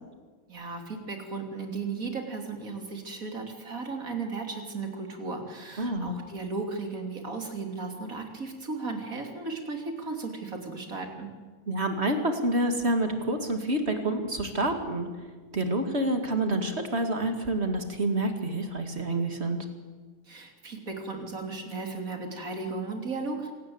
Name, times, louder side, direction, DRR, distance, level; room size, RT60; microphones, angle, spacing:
voice 1, 0.5-11.3 20.3-23.5, right 3 dB, 80° right, 4 dB, 3.6 m, -35 dB
voice 2, 5.8-6.1 11.7-15.1 15.5-19.7, right 1 dB, 50° right, 6 dB, 2.6 m, -28 dB
26.0 x 18.0 x 8.0 m, 1.4 s
omnidirectional pair, 1.4 m